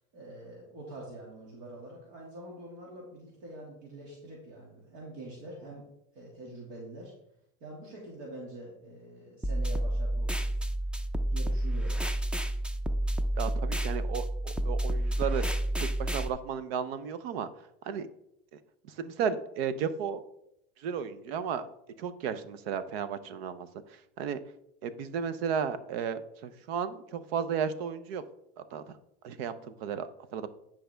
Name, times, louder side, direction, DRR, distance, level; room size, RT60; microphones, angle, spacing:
voice 1, 0.1-5.9 6.1-7.1 7.6-10.7 11.3-12.0, right 1 dB, 70° right, -3 dB, 2.3 m, -45 dB
sound 1, 9.4-16.3, right 1 dB, 5° right, 0.4 m, -30 dB
voice 2, 13.4-15.4 16.0-17.5 17.9-18.1 19.0-20.2 20.8-21.7 22.0-23.7 24.2-24.4 24.8-28.2 28.7-28.8 29.2-30.5, right 7 dB, 90° right, 13 dB, 0.8 m, -33 dB
10.0 x 5.0 x 3.4 m, 0.79 s
supercardioid pair, 120°, 30 cm